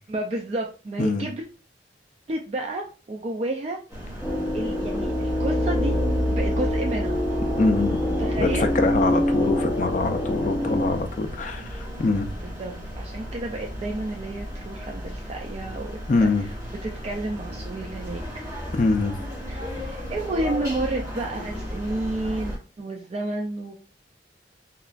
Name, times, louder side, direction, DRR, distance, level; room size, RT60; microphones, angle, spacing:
voice 1, 0.1-1.4 2.3-3.8 4.5-6.0 6.3-7.2 8.1-8.7 12.6-16.0 16.8-18.2 19.5-23.8, right 2 dB, 35° right, 1 dB, 0.3 m, -31 dB
sound 1, 3.9-22.6, equal, 20° right, 1.0 m, -35 dB
sound 2, 4.2-10.9, left 1 dB, 5° left, 0.7 m, -25 dB
voice 2, 7.6-8.0 8.4-12.3 16.1-16.4 18.7-19.1, left 3 dB, 45° left, 6 dB, 0.4 m, -24 dB
2.9 x 2.3 x 2.4 m, 0.34 s
head